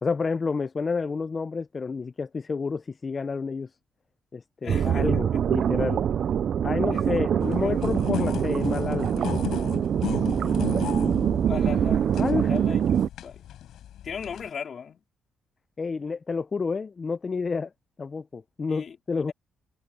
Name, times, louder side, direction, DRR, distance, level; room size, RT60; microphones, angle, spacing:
voice 1, 0.0-3.7 4.3-6.0 6.6-9.1 12.2-12.5 15.8-17.7 18.0-19.3, left 4 dB, 35° left, 0.6 m, -29 dB
voice 2, 4.6-5.4 6.9-7.2 7.6-8.0 11.4-13.5 14.0-15.0 18.7-19.3, left 6 dB, 50° left, 4.2 m, -38 dB
sound 1, 4.7-13.1, right 8 dB, 60° right, 0.4 m, -24 dB
sound 2, 7.4-14.5, left 11 dB, 75° left, 6.2 m, -35 dB
cardioid pair, 90°, 0 cm